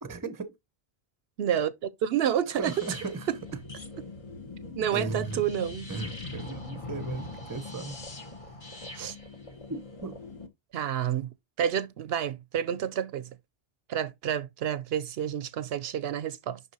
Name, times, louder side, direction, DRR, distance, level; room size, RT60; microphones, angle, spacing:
voice 1, 0.0-0.5 2.5-3.3 4.9-5.4 5.9-8.0 9.7-10.2, right 4 dB, 20° right, 0.7 m, -36 dB
voice 2, 1.4-2.7 3.3-3.4 4.8-5.9 9.0-9.1 10.7-11.3 11.6-13.3 13.9-16.6, right 9 dB, 75° right, 0.8 m, -29 dB
sound 1, 2.6-10.5, left 3 dB, 35° left, 1.1 m, -41 dB
6.2 x 5.7 x 2.8 m
omnidirectional pair, 1.1 m